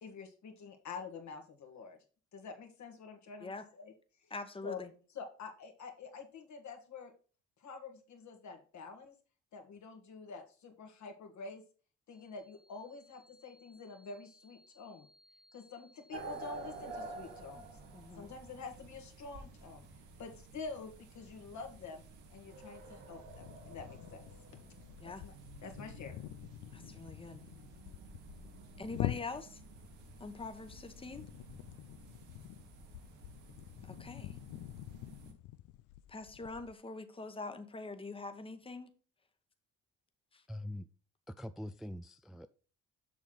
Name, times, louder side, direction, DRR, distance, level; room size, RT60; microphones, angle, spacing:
voice 1, 0.0-2.0 2.3-3.9 4.2-4.3 4.6-4.8 5.2-7.1 7.6-9.1 9.5-11.6 12.1-15.1 15.5-17.7 18.2-19.9 20.2-22.0 22.3-24.2 25.0-25.3 25.6-26.2, left 4 dB, 70° left, 1.9 m, -47 dB
voice 2, 4.3-4.9 17.9-18.3 25.0-25.2 26.7-27.4 28.8-29.6 30.2-31.2 33.8-34.4 36.1-38.9 40.3-40.4, left 3 dB, 20° left, 1.0 m, -44 dB
sound 1, 12.1-17.8, left 1 dB, 70° right, 2.9 m, -67 dB
stray dogs, 16.1-35.3, right 3 dB, 90° right, 1.7 m, -51 dB
sound 2, 23.3-36.7, left 14 dB, 90° left, 0.5 m, -46 dB
voice 3, 40.5-40.9 41.3-42.5, left 1 dB, ahead, 0.3 m, -43 dB
7.0 x 6.2 x 3.9 m
cardioid pair, 90°, 30 cm